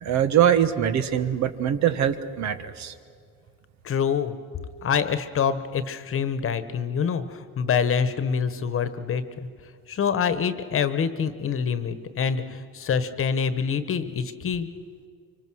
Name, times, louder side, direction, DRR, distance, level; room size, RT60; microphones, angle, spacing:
voice 1, 0.0-2.9, right 9 dB, 60° right, 10 dB, 1.3 m, -23 dB
voice 2, 3.8-4.4 4.8-9.5 9.9-14.7, left 7 dB, 45° left, 12 dB, 1.3 m, -26 dB
24.5 x 24.5 x 6.3 m, 2.1 s
cardioid pair, 110°, 31 cm